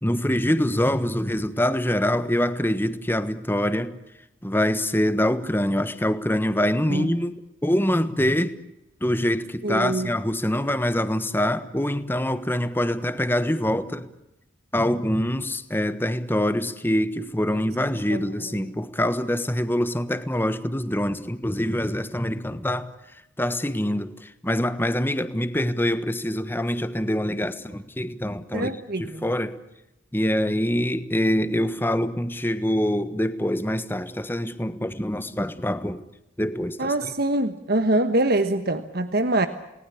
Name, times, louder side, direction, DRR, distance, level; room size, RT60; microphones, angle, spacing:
voice 1, 0.0-4.0 4.4-7.3 7.6-8.5 9.0-14.1 14.7-22.9 23.4-28.7 29.0-29.6 30.1-36.0 36.4-37.1, left 1 dB, 10° left, 12 dB, 1.3 m, -25 dB
voice 2, 9.6-10.1 18.1-18.3 28.5-29.2 36.8-39.5, right 2 dB, 50° right, 9 dB, 1.3 m, -24 dB
29.5 x 19.5 x 8.5 m, 0.92 s
head